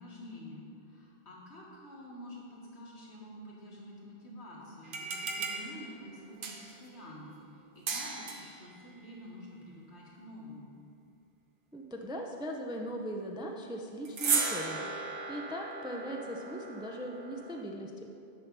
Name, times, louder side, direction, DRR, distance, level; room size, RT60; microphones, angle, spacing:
voice 1, 0.0-7.4 7.8-10.7, equal, 80° left, -5 dB, 1.9 m, -48 dB
sound 1, 4.8-6.9 7.9-8.6 14.0-17.6, right 5 dB, 55° right, 0.9 m, -36 dB
voice 2, 11.7-14.9 15.3-18.1, equal, 10° right, 1 dB, 0.3 m, -39 dB
7.1 x 5.8 x 5.3 m, 2.5 s
omnidirectional pair, 1.1 m